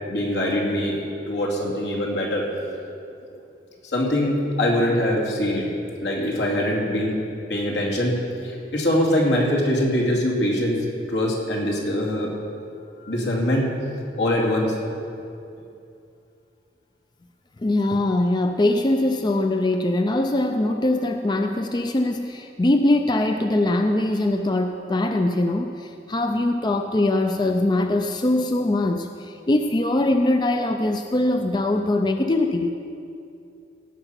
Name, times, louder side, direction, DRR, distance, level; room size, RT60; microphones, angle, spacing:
voice 1, 0.0-1.0 1.3-2.5 3.8-5.7 6.0-7.2 7.5-8.2 8.4-10.8 11.1-12.3 13.0-13.7 14.2-14.7, left 1 dB, 80° left, -3 dB, 2.6 m, -23 dB
voice 2, 17.6-32.8, left 1 dB, 25° left, 6 dB, 0.4 m, -22 dB
17.5 x 7.0 x 5.7 m, 2.6 s
head